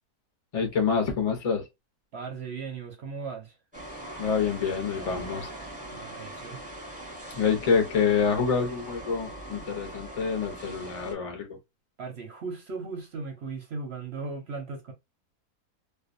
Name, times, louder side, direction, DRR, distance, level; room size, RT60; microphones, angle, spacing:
voice 1, 0.5-1.7 4.2-5.5 7.3-11.6, left 6 dB, 40° left, 0.5 m, -27 dB
voice 2, 2.1-3.6 5.9-6.7 12.0-14.9, right 4 dB, 55° right, 0.8 m, -37 dB
sound 1, 3.7-11.1, right 1 dB, 5° right, 0.7 m, -41 dB
2.5 x 2.2 x 2.5 m
omnidirectional pair, 1.6 m